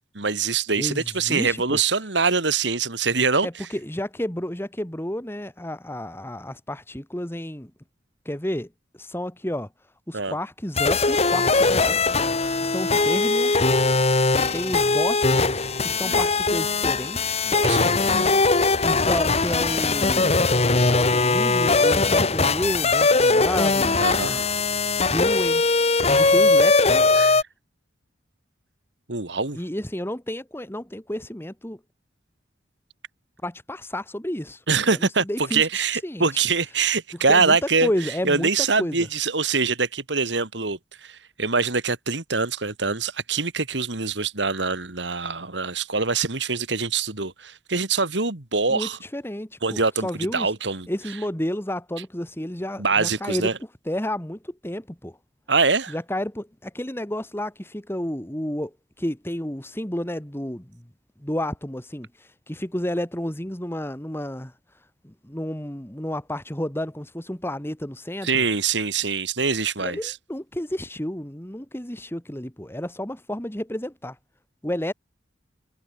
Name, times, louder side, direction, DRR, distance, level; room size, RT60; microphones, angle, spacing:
voice 1, 0.1-3.7 10.1-10.4 16.0-16.2 17.4-17.9 24.0-24.4 27.1-27.4 29.1-29.6 34.7-49.0 49.6-50.9 52.8-53.6 55.5-56.0 68.2-70.2, right 4 dB, 70° right, 2.5 m, -24 dB
voice 2, 0.8-1.8 3.4-7.7 8.3-8.7 9.0-9.7 10.1-12.0 12.6-13.8 14.5-17.5 18.8-20.3 20.8-24.4 25.1-25.6 26.2-27.2 29.5-31.8 33.4-34.6 35.2-36.4 37.3-37.6 37.8-38.5 38.8-39.0 48.7-50.5 50.9-53.5 53.9-55.2 55.9-58.7 59.0-60.8 61.2-64.5 65.0-68.4 69.8-74.2 74.6-74.9, left 1 dB, 15° left, 2.2 m, -31 dB
sound 1, 10.8-27.4, left 3 dB, 35° left, 1.7 m, -20 dB
head